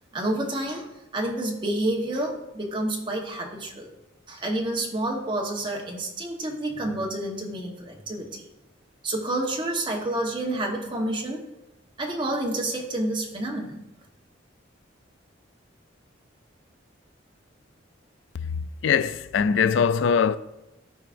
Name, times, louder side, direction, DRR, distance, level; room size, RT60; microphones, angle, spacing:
voice 1, 0.1-3.9 4.3-8.5 9.0-11.4 12.0-13.8, right 1 dB, 25° right, 1.1 m, -29 dB
voice 2, 18.8-20.4, left 6 dB, 75° left, 0.3 m, -21 dB
14.0 x 4.9 x 2.5 m
head